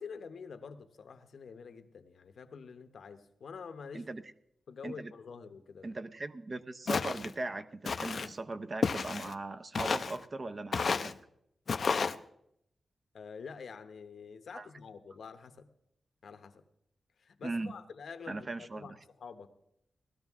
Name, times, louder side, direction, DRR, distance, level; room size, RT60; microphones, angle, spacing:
voice 1, 0.0-4.1 4.7-5.9 13.1-15.7 16.2-16.6 17.2-19.5, left 5 dB, 75° left, 9 dB, 0.9 m, -47 dB
voice 2, 5.8-11.1 14.5-14.7 17.4-17.7 18.3-18.9, right 2 dB, 30° right, 10 dB, 0.6 m, -39 dB
Walk footsteps, 6.9-7.3 7.9-8.3 8.8-9.3 9.8-10.2 10.7-11.1 11.7-12.2, left 5 dB, 50° left, 0.4 m, -31 dB
18.5 x 13.0 x 3.6 m, 0.75 s
wide cardioid pair, 170°, 0 cm